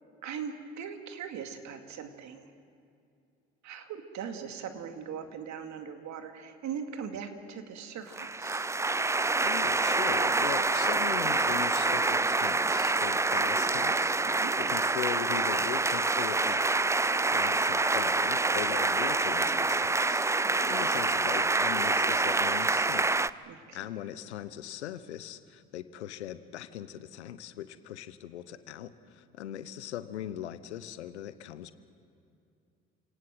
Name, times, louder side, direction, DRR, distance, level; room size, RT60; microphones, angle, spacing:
voice 1, 0.2-2.5 3.6-8.6 14.3-14.5 23.5-23.9, right 7 dB, 55° right, 6 dB, 2.5 m, -40 dB
sound 1, 8.1-23.3, right 3 dB, 10° right, 0.5 m, -27 dB
voice 2, 9.4-14.2 14.6-16.8 17.3-20.3 20.6-23.2 23.7-31.7, left 11 dB, 90° left, 14 dB, 1.0 m, -40 dB
29.0 x 18.5 x 7.7 m, 2.5 s
hypercardioid pair, 60°, 33 cm